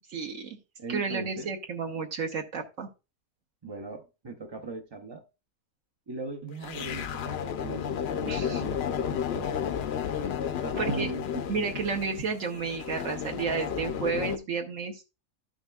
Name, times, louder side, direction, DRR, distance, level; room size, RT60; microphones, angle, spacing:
voice 1, 0.1-0.6 0.9-2.9 8.3-8.6 10.8-11.1 11.5-15.0, right 5 dB, 65° right, 1.3 m, -31 dB
voice 2, 0.8-1.5 3.6-5.2 6.1-9.9 10.6-11.5, right 3 dB, 35° right, 0.4 m, -39 dB
sound 1, 6.6-14.4, left 8 dB, 60° left, 0.7 m, -32 dB
12.5 x 6.3 x 2.3 m
omnidirectional pair, 1.5 m